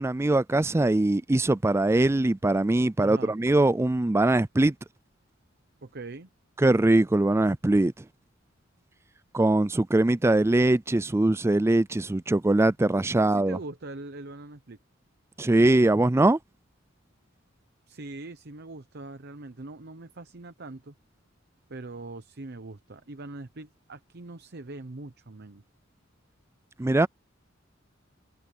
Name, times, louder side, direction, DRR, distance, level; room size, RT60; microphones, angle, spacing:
voice 1, 0.0-4.7 6.6-7.9 9.3-13.6 15.4-16.4 26.8-27.1, right 2 dB, 15° right, 0.4 m, -22 dB
voice 2, 3.0-3.3 5.8-6.3 13.2-14.8 17.9-21.0 21.7-25.6, right 2 dB, 55° right, 0.9 m, -42 dB
head